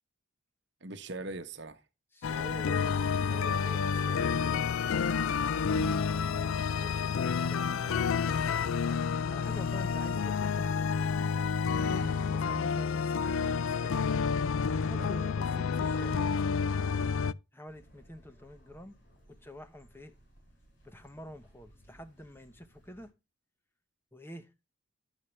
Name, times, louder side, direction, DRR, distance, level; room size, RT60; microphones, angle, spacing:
voice 1, 0.8-1.8 5.7-6.0 11.8-12.2 15.0-15.5, right 2 dB, 55° right, 1.1 m, -42 dB
voice 2, 2.1-5.1 6.0-8.7 9.3-10.8 12.0-14.1 14.8-16.6 17.5-19.0 19.3-20.1 20.8-23.1 24.1-24.5, equal, 10° left, 0.9 m, -48 dB
sound 1, 2.2-17.3, left 6 dB, 85° left, 0.4 m, -29 dB
sound 2, 17.6-23.1, equal, 60° left, 5.7 m, -60 dB
11.0 x 7.3 x 3.2 m
head